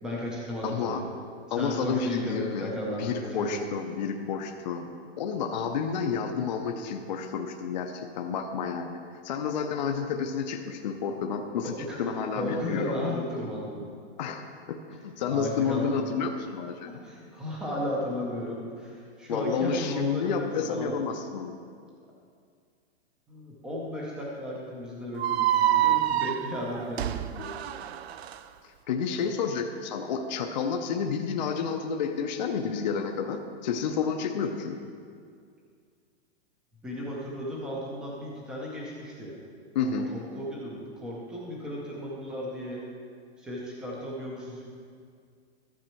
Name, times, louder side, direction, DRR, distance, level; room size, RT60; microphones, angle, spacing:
voice 1, 0.0-1.0 1.5-3.6 11.6-13.9 15.3-16.1 16.8-21.0 23.3-27.5 36.8-39.3 39.8-42.8 43.4-44.7, left 1 dB, ahead, -4 dB, 0.5 m, -34 dB
voice 2, 0.6-1.0 1.5-2.7 3.0-4.9 5.2-11.7 12.0-13.0 14.2-16.9 19.3-21.6 28.9-34.8 39.7-40.1, left 6 dB, 40° left, 4 dB, 0.6 m, -30 dB
sound 1, 25.2-28.4, right 12 dB, 70° right, 0.5 m, -26 dB
13.0 x 7.1 x 4.4 m, 2.2 s
hypercardioid pair, 175°, 33 cm